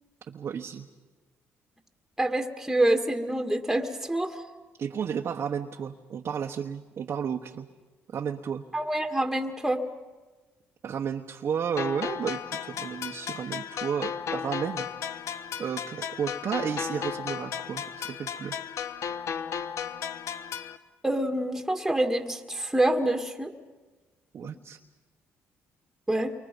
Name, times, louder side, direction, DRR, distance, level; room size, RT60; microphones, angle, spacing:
voice 1, 0.3-0.8 4.8-7.7 8.1-8.6 10.8-18.6 24.3-24.8, right 7 dB, 55° right, 3 dB, 1.2 m, -33 dB
voice 2, 2.2-4.3 8.7-9.8 21.0-23.5 26.1-26.3, right 1 dB, 5° right, 4 dB, 2.0 m, -26 dB
sound 1, 11.8-20.8, left 8 dB, 65° left, 1.1 m, -35 dB
29.5 x 24.0 x 5.4 m, 1.2 s
cardioid pair, 80°, 5 cm